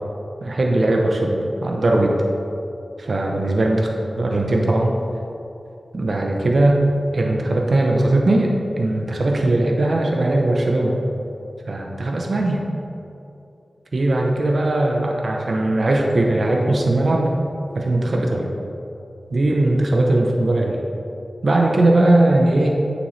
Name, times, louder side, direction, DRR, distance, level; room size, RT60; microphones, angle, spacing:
voice 1, 0.4-2.2 3.0-5.0 5.9-6.8 7.1-11.0 11.7-12.6 13.9-17.3 17.7-18.5 19.3-20.8 21.4-22.8, right 2 dB, 65° right, 0 dB, 0.8 m, -19 dB
9.1 x 7.2 x 3.2 m, 2.8 s
wide cardioid pair, 70°, 0 cm